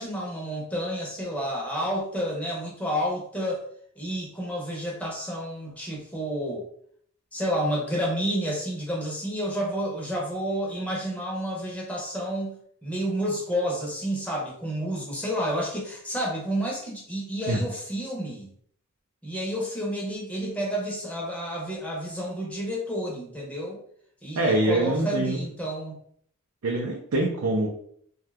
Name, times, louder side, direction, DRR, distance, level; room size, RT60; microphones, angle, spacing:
voice 1, 0.0-3.6 4.0-6.7 7.3-12.6 12.8-18.5 19.2-23.8 24.2-26.0, equal, 5° left, -3 dB, 0.7 m, -30 dB
voice 2, 24.3-25.4 26.6-27.7, right 2 dB, 75° right, -1 dB, 0.5 m, -24 dB
2.7 x 2.3 x 3.3 m, 0.62 s
head